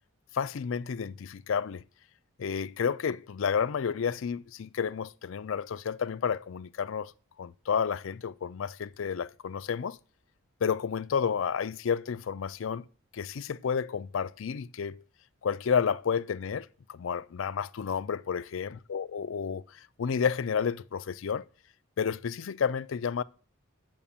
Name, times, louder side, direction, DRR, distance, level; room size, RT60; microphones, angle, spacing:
voice 1, 0.3-1.8 2.4-7.1 7.4-10.0 10.6-12.8 13.1-15.0 15.4-19.6 20.0-21.4 22.0-23.2, left 6 dB, 65° left, 0.4 m, -31 dB
7.0 x 5.9 x 7.1 m
head